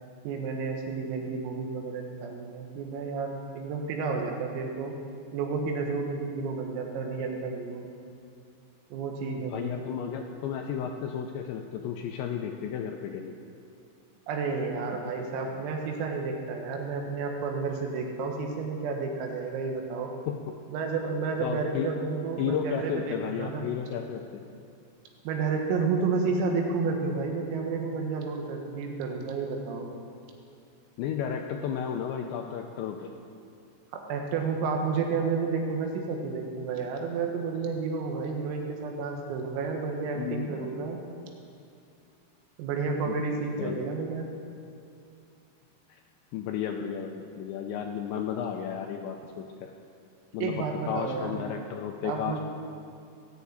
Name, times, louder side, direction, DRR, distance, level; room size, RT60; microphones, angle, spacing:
voice 1, 0.3-5.0 5.3-7.9 8.9-9.8 14.3-20.1 20.7-23.7 25.3-29.9 33.9-41.0 42.6-44.3 50.4-51.4 52.0-52.4, right 4 dB, 90° right, 2 dB, 4.3 m, -31 dB
voice 2, 9.4-13.4 20.3-20.5 21.4-22.0 22.4-24.4 31.0-33.1 40.2-40.7 43.1-43.2 43.6-43.9 45.9-46.0 46.3-49.7 50.3-52.4, left 8 dB, 80° left, 3 dB, 2.6 m, -33 dB
20.0 x 7.1 x 8.6 m, 2.4 s
omnidirectional pair, 5.9 m